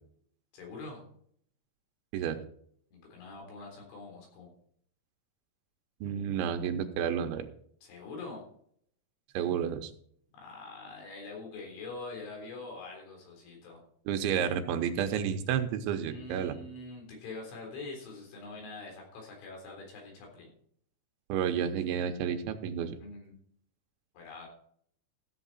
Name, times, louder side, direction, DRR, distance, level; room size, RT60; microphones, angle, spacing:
voice 1, 0.5-1.0 2.9-4.5 7.8-8.4 10.3-13.8 16.1-20.5 23.0-23.3 24.1-24.5, left 3 dB, 80° left, 1 dB, 6.2 m, -44 dB
voice 2, 6.0-7.4 9.3-9.9 14.1-16.6 21.3-23.0, right 8 dB, 85° right, 7 dB, 3.2 m, -31 dB
14.5 x 8.1 x 4.2 m, 0.63 s
omnidirectional pair, 5.4 m